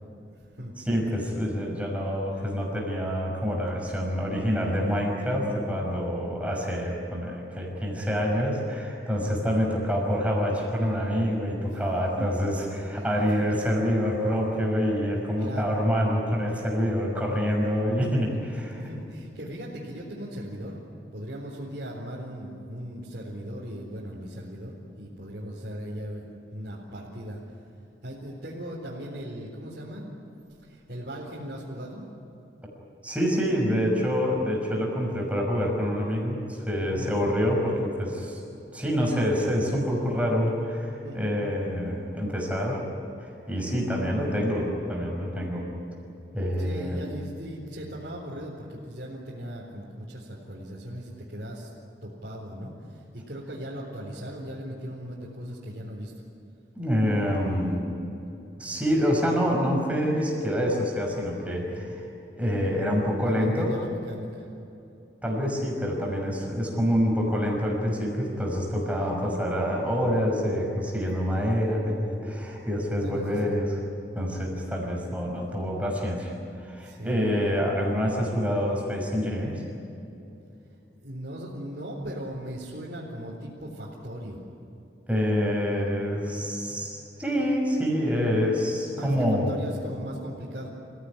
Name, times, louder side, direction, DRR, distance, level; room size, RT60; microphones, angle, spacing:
voice 1, 0.9-18.8 33.0-38.4 38.7-42.8 43.2-45.7 46.3-47.0 56.8-57.9 58.6-62.0 62.4-63.8 65.2-73.8 74.1-76.3 76.6-79.6 85.1-89.5, equal, 10° right, -2 dB, 6.1 m, -26 dB
voice 2, 8.0-8.3 9.2-9.5 11.7-11.8 12.2-12.5 12.9-13.4 15.4-15.8 18.7-20.8 21.1-27.4 28.0-30.1 30.6-32.1 36.8-37.1 41.0-41.4 46.6-51.7 52.0-56.2 61.7-62.0 63.2-64.5 65.4-65.6 68.7-69.0 72.1-72.3 72.7-73.6 76.8-77.4 81.0-84.4 86.1-87.2 88.3-88.6 89.0-90.7, equal, 60° right, -6 dB, 4.1 m, -38 dB
28.0 x 17.0 x 10.0 m, 2.8 s
head